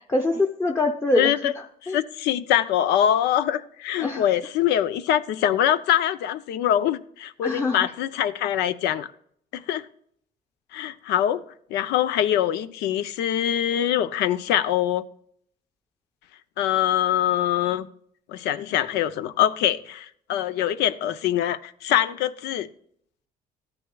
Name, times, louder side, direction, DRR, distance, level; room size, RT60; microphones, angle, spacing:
voice 1, 0.1-1.3 1.9-2.0 4.0-4.2 7.4-7.9, left 2 dB, 15° left, 0.8 m, -23 dB
voice 2, 1.1-1.5 1.8-9.1 9.5-9.9 10.7-11.4 11.7-15.1 16.6-17.9 18.3-22.7, left 11 dB, 85° left, 0.6 m, -23 dB
13.5 x 9.7 x 2.3 m
cardioid pair, 110°, 17 cm